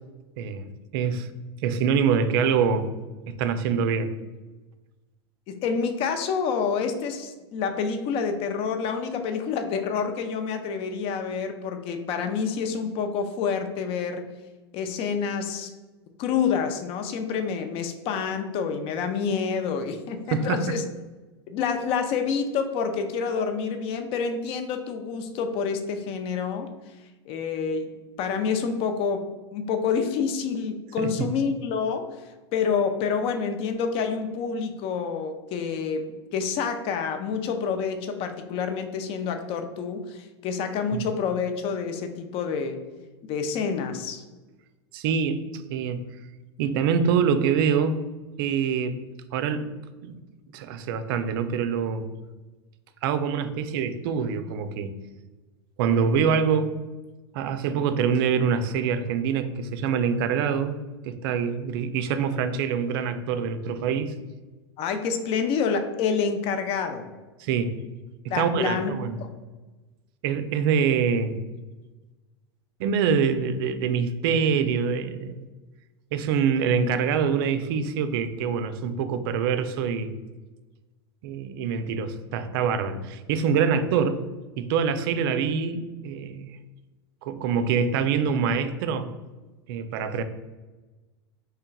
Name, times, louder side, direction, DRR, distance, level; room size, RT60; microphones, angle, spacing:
voice 1, 0.9-1.3 1.6-2.9 3.3-4.2 20.3-20.6 31.0-31.3 40.9-41.0 44.9-45.4 45.7-46.1 46.6-48.0 48.4-49.0 49.3-49.7 50.0-50.2 50.5-52.1 53.0-54.9 55.8-56.8 57.3-60.8 61.0-64.1 67.4-67.8 68.2-69.2 70.2-71.4 72.8-75.5 76.1-80.1 81.2-84.2 84.6-86.6 87.2-89.1 89.7-90.2, right 6 dB, 60° right, 10 dB, 0.4 m, -25 dB
voice 2, 5.5-14.3 14.7-15.7 16.2-20.8 21.5-26.7 27.3-27.9 28.2-32.2 32.5-42.8 43.3-44.2 64.8-67.1 68.3-68.9 69.2-69.3, left 6 dB, 45° left, 7 dB, 0.5 m, -28 dB
4.5 x 3.3 x 2.3 m, 1.2 s
hypercardioid pair, 95°, 14 cm